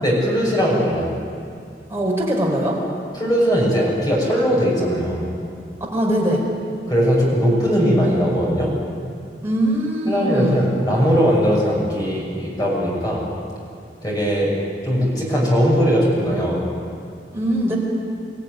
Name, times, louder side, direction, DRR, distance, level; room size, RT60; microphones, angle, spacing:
voice 1, 0.0-1.1 3.1-5.3 6.9-8.7 10.1-13.2 14.0-14.5 14.8-16.6, equal, 20° left, -4 dB, 6.4 m, -19 dB
voice 2, 1.9-2.8 5.9-6.4 9.4-10.7 17.3-17.8, right 1 dB, 15° right, -3 dB, 4.6 m, -21 dB
24.5 x 16.0 x 9.4 m, 2.3 s
head